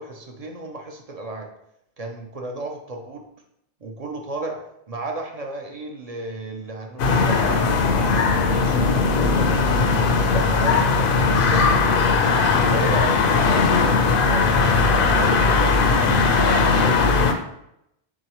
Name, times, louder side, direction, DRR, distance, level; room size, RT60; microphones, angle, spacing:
voice 1, 0.0-1.5 2.0-3.2 3.8-4.6 4.9-11.0 11.5-12.2 12.5-17.0, right 2 dB, 45° right, 2 dB, 0.6 m, -33 dB
sound 1, 7.0-17.3, left 4 dB, 65° left, 0.7 m, -18 dB
4.7 x 3.8 x 2.9 m, 0.79 s
omnidirectional pair, 1.1 m